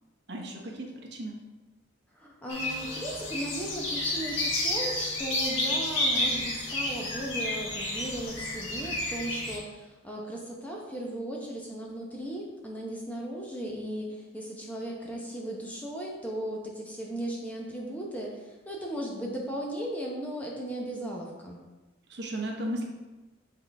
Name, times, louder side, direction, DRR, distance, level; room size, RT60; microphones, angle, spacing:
voice 1, 0.3-1.4 22.1-22.8, right 1 dB, 55° right, 1 dB, 0.9 m, -35 dB
voice 2, 2.1-21.6, right 1 dB, 5° left, -2 dB, 0.8 m, -36 dB
sound 1, 2.5-9.6, left 1 dB, 80° left, 1.4 m, -31 dB
7.9 x 3.8 x 3.5 m, 1.2 s
head